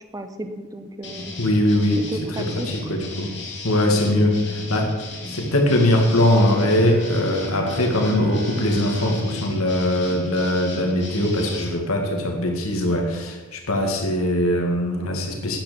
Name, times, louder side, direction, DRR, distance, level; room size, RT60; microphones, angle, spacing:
voice 1, 0.1-1.3 2.1-2.7 4.1-4.2 11.1-11.6, right 1 dB, 15° right, 8 dB, 0.8 m, -34 dB
sound 1, 1.0-11.7, left 2 dB, 55° left, 3.1 m, -36 dB
voice 2, 1.4-2.0 2.3-3.3 3.6-4.9 5.3-15.6, left 1 dB, 85° left, 2 dB, 2.1 m, -21 dB
sound 2, 6.1-10.8, left 1 dB, 40° right, 1.1 m, -37 dB
10.0 x 9.5 x 6.9 m, 1.2 s
head